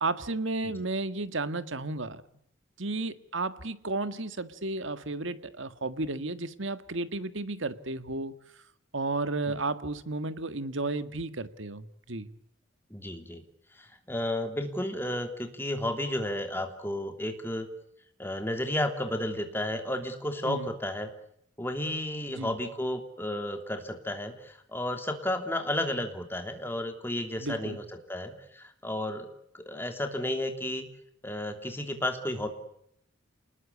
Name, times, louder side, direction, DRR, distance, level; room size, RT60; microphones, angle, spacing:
voice 1, 0.0-2.2 2.8-8.3 8.9-12.3 20.4-20.7 22.3-22.5 27.4-27.8, right 2 dB, 65° right, 12 dB, 1.6 m, -33 dB
voice 2, 12.9-13.4 13.8-17.7 18.2-21.1 21.6-27.8 28.1-29.3 29.7-30.9 31.2-32.5, left 1 dB, 10° left, 5 dB, 3.1 m, -32 dB
28.0 x 20.5 x 8.4 m, 0.72 s
head